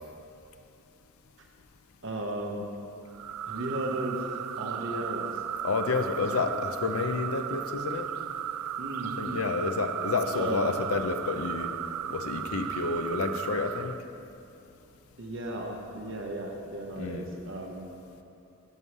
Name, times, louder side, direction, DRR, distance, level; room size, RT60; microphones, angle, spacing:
voice 1, 2.0-2.7 3.5-5.4 8.8-9.5 10.3-10.7 15.2-17.9, right 1 dB, 55° right, 1 dB, 1.1 m, -35 dB
sound 1, 3.1-14.0, right 9 dB, 85° right, 0.3 m, -35 dB
voice 2, 5.6-8.1 9.2-11.8 12.1-14.0 17.0-17.3, left 4 dB, 75° left, 7 dB, 0.6 m, -30 dB
11.0 x 5.5 x 4.8 m, 2.7 s
head